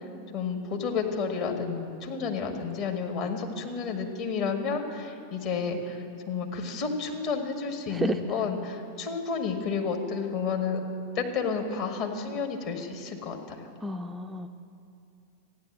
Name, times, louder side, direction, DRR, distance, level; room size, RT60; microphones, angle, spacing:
voice 1, 0.3-10.8 11.1-13.6, left 5 dB, 45° left, 3 dB, 1.8 m, -31 dB
voice 2, 7.9-8.2 13.8-14.5, right 1 dB, 10° right, 5 dB, 0.5 m, -30 dB
14.0 x 9.8 x 7.4 m, 2.7 s
figure-of-eight pair, 90°, 0 cm